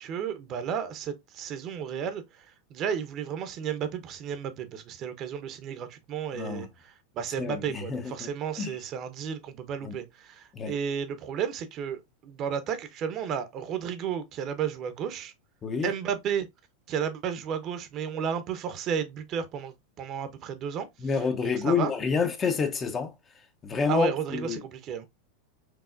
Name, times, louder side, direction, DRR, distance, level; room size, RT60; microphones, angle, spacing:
voice 1, 0.0-15.3 15.8-16.5 16.9-21.9 23.9-25.1, right 7 dB, 45° right, 0.8 m, -33 dB
voice 2, 6.3-6.7 7.4-8.3 8.6-8.7 9.8-10.0 10.5-10.7 15.6-15.9 21.0-23.1 23.6-24.6, left 5 dB, 25° left, 0.8 m, -28 dB
4.7 x 2.8 x 2.5 m
hypercardioid pair, 100°, 0 cm